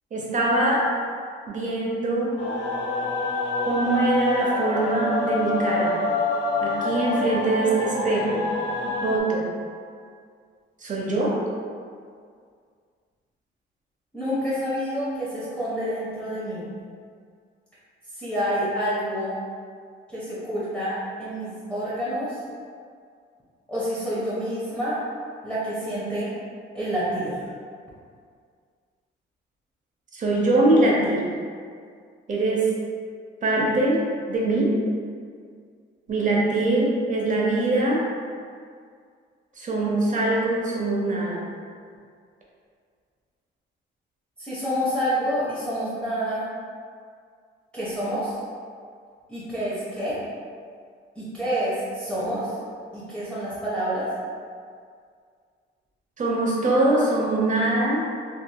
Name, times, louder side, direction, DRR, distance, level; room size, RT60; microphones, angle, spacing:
voice 1, 0.1-0.8 1.5-2.3 3.7-6.0 6.6-8.5 8.8-9.5 10.8-11.4 30.1-31.2 32.3-32.7 33.4-34.0 34.3-34.7 36.1-38.0 39.6-41.4 56.2-58.0, right 2 dB, 40° right, -4 dB, 0.7 m, -23 dB
sound 1, 2.4-9.2, left 2 dB, 65° left, 0.6 m, -26 dB
voice 2, 14.1-16.7 18.1-19.4 20.1-22.4 23.7-25.0 25.4-26.3 26.7-27.4 44.4-46.5 47.7-48.4 49.3-50.2 51.2-52.5 52.9-54.1, equal, 5° left, -12 dB, 0.7 m, -28 dB
3.0 x 2.6 x 2.3 m, 2.1 s
cardioid pair, 90°, 20 cm